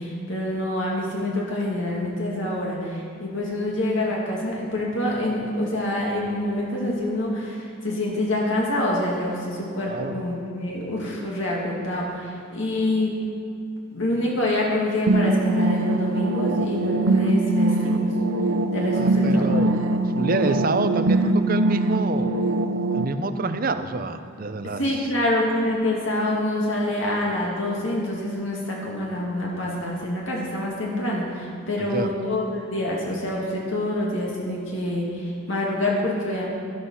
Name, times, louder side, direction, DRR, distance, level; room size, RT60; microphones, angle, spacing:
voice 1, 0.0-13.1 13.9-18.0 18.7-19.8 20.4-20.6 24.8-36.5, left 1 dB, 65° left, -3 dB, 2.3 m, -26 dB
sound 1, 15.1-23.1, right 2 dB, 80° right, 0.8 m, -22 dB
voice 2, 18.9-19.7 20.1-22.4 22.9-25.0 31.8-32.1, right 3 dB, 45° right, 10 dB, 0.6 m, -27 dB
12.0 x 11.5 x 5.6 m, 2.5 s
head